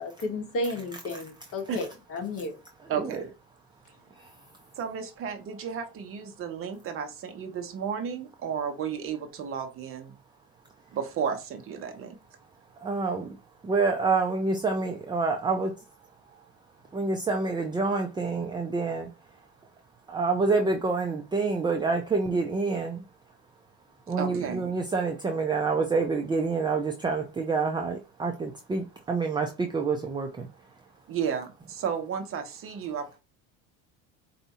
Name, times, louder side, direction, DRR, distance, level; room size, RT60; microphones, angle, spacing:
voice 1, 0.0-2.5, left 2 dB, 45° left, 1.4 m, -33 dB
voice 2, 2.9-3.2 4.8-10.1 10.9-12.2 24.2-24.6 31.1-33.2, right 7 dB, 45° right, 1.0 m, -33 dB
voice 3, 12.8-13.3 13.6-15.7 16.9-19.1 20.1-23.0 24.1-30.5, right 4 dB, 15° right, 0.5 m, -27 dB
4.6 x 2.7 x 4.1 m
cardioid pair, 140°, 32 cm